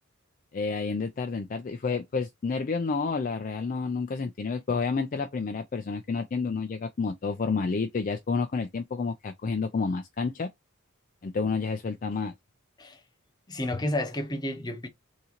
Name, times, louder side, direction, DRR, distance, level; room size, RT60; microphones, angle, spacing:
voice 1, 0.5-10.5 11.2-12.3, left 4 dB, 40° left, 0.4 m, -30 dB
voice 2, 13.5-14.9, left 1 dB, 20° left, 0.8 m, -31 dB
3.8 x 2.7 x 2.8 m
head